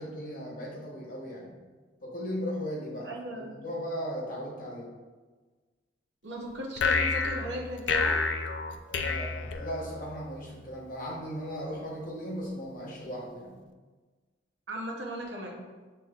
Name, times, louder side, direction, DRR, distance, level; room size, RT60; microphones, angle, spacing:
voice 1, 0.0-1.5 2.0-4.9 8.9-13.6, equal, 50° left, -3 dB, 1.1 m, -37 dB
voice 2, 3.0-3.5 6.2-8.2 14.7-15.7, equal, 70° right, 0 dB, 0.8 m, -37 dB
sound 1, 6.8-10.2, left 4 dB, 75° left, 0.4 m, -29 dB
7.0 x 3.0 x 2.4 m, 1.3 s
head